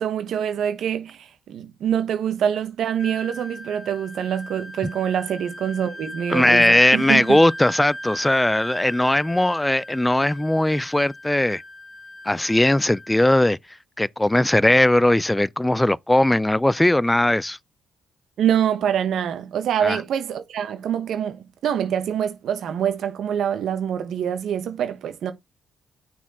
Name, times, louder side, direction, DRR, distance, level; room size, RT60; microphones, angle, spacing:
voice 1, 0.0-7.4 18.4-25.3, right 9 dB, 70° right, 1.0 m, -25 dB
Wind instrument woodwind instrument, 3.0-13.3, equal, 40° left, 1.3 m, -38 dB
voice 2, 6.3-11.6 12.3-13.6 14.0-17.6 19.8-20.0, left 1 dB, 10° left, 0.3 m, -19 dB
6.0 x 4.2 x 4.2 m
cardioid pair, 90°, 0 cm